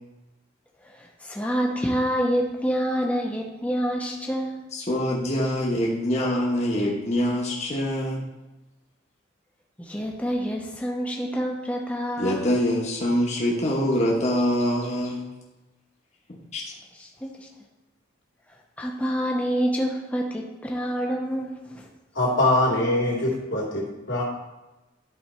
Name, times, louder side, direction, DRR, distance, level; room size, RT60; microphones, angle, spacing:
voice 1, 0.8-4.6 9.8-12.4 16.9-17.5 18.8-21.9, equal, 10° left, -1 dB, 0.8 m, -27 dB
voice 2, 4.7-8.2 12.2-15.2 16.5-16.6, left 1 dB, 40° left, -3 dB, 1.2 m, -24 dB
voice 3, 22.1-24.2, left 1 dB, 75° left, -3 dB, 2.5 m, -23 dB
11.5 x 4.3 x 4.4 m, 1.0 s
head